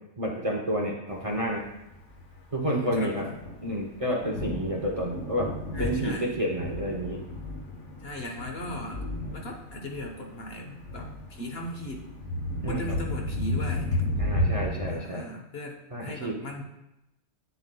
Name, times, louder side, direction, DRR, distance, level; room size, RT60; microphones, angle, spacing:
voice 1, 0.2-1.6 2.5-3.3 3.6-5.5 5.8-7.2 12.6-12.8 14.2-15.3 15.9-16.3, equal, 35° right, -1 dB, 0.7 m, -30 dB
Thunder, 1.3-14.9, left 1 dB, 85° left, 1.4 m, -33 dB
voice 2, 2.6-3.4 5.7-6.3 8.0-9.0 9.3-12.1 12.7-14.0 14.9-16.6, left 1 dB, 60° left, 2 dB, 1.1 m, -37 dB
8.4 x 6.8 x 2.2 m, 0.88 s
omnidirectional pair, 1.2 m